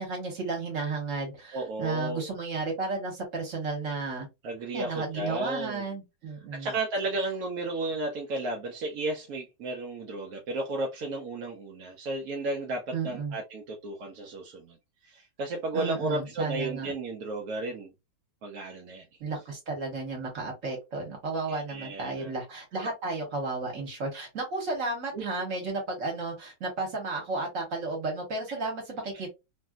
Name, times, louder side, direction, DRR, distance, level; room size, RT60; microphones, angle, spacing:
voice 1, 0.0-4.3 4.7-6.7 12.9-13.4 15.7-16.9 19.2-29.3, right 3 dB, 45° right, 1.5 m, -33 dB
voice 2, 1.5-2.3 4.4-5.9 6.5-14.8 15.0-17.9 18.4-19.0 21.5-22.3 25.1-25.4 28.5-28.6, right 2 dB, 65° right, 0.9 m, -33 dB
3.2 x 2.6 x 2.3 m
omnidirectional pair, 2.1 m